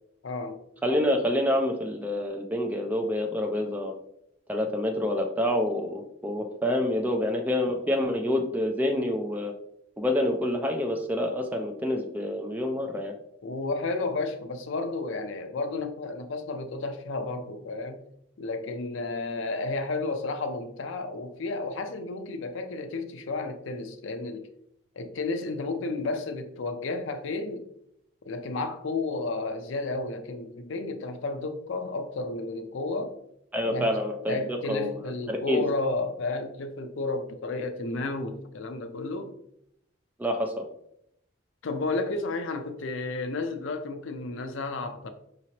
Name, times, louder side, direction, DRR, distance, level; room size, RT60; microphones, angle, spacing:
voice 1, 0.2-0.6 13.4-18.0 18.4-24.5 25.0-27.7 28.3-33.1 33.7-34.0 34.3-39.3 41.6-45.1, left 3 dB, 70° left, 0.5 m, -32 dB
voice 2, 0.8-3.9 4.5-9.5 10.0-13.1 33.5-34.9 35.3-35.6 40.2-40.6, left 1 dB, 10° right, 0.4 m, -27 dB
4.9 x 3.0 x 2.8 m
head